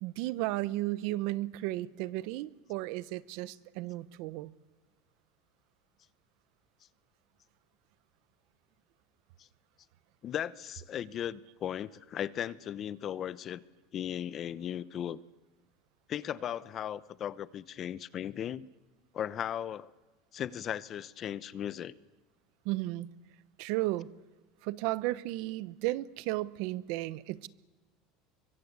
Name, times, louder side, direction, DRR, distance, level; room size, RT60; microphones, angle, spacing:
voice 1, 0.0-4.5 22.6-23.1 23.6-24.1 24.6-27.5, right 17 dB, 65° right, 1.0 m, -34 dB
voice 2, 10.2-13.6 13.9-15.2 16.1-18.7 19.1-19.9 20.3-22.0, left 10 dB, 35° left, 0.8 m, -37 dB
27.0 x 24.0 x 8.2 m
supercardioid pair, 140°, 0 cm